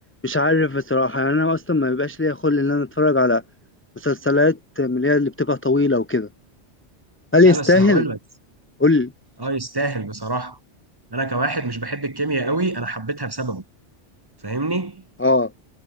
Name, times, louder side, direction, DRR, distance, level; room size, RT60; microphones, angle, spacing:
voice 1, 0.2-3.4 4.0-6.3 7.3-8.0 8.8-9.1 15.2-15.5, left 2 dB, 20° left, 0.3 m, -19 dB
voice 2, 7.4-8.2 9.4-10.6 11.1-13.6 14.4-15.0, right 2 dB, 20° right, 1.0 m, -25 dB
omnidirectional pair, 1.2 m